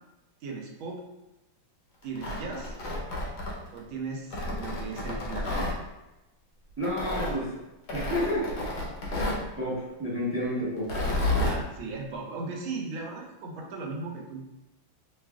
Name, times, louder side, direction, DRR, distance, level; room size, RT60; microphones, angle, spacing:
voice 1, 0.4-1.0 2.0-2.7 3.7-5.8 7.1-7.5 11.3-14.4, right 4 dB, 85° right, 0 dB, 1.5 m, -37 dB
Tearing, 2.0-3.8 4.3-5.8 6.8-7.3 7.9-9.5 10.8-11.6, left 2 dB, 60° left, 1.3 m, -30 dB
voice 2, 6.8-7.5 7.9-8.5 9.0-10.9, equal, 10° right, -8 dB, 0.8 m, -31 dB
6.2 x 2.4 x 2.3 m, 0.97 s
omnidirectional pair, 2.2 m